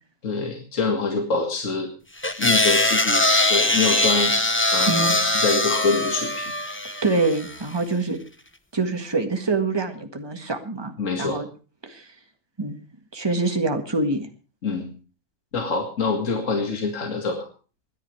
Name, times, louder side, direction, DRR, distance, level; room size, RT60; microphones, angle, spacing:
voice 1, 0.2-1.9 2.4-4.3 4.7-6.5 11.0-11.4 14.6-14.9 15.5-17.5, left 4 dB, 55° left, 2 dB, 2.5 m, -25 dB
sound 1, 2.2-7.6, left 2 dB, 10° left, 0.6 m, -21 dB
voice 2, 4.9-5.2 7.0-8.2 8.7-11.5 11.8-12.1 12.6-12.8 13.1-14.3, right 3 dB, 15° right, 5 dB, 1.6 m, -25 dB
27.0 x 10.5 x 3.4 m, 0.36 s
omnidirectional pair, 1.6 m